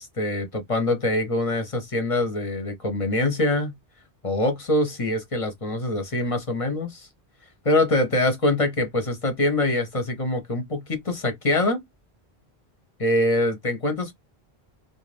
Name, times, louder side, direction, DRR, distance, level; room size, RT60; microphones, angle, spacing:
voice 1, 0.0-3.7 4.2-7.1 7.6-11.8 13.0-14.1, left 1 dB, 35° left, 0.8 m, -24 dB
2.5 x 2.2 x 3.2 m
omnidirectional pair, 1.1 m